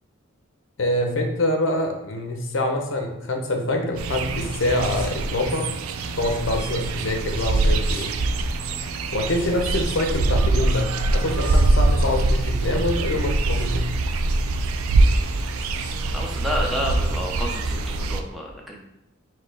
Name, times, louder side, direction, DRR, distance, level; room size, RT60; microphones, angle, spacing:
voice 1, 0.8-5.7 6.2-8.1 9.1-13.8, left 1 dB, 65° left, 3 dB, 0.7 m, -25 dB
sound 1, 4.0-18.2, right 2 dB, 85° right, 0.4 m, -23 dB
sound 2, 4.8-5.3 6.3-6.8 7.4-8.2 9.4-10.0 11.2-11.9 13.2-13.8 15.6-15.9, right 2 dB, 25° right, 0.9 m, -44 dB
voice 2, 16.1-18.8, equal, ahead, -2 dB, 0.7 m, -30 dB
4.6 x 2.2 x 4.7 m, 0.84 s
head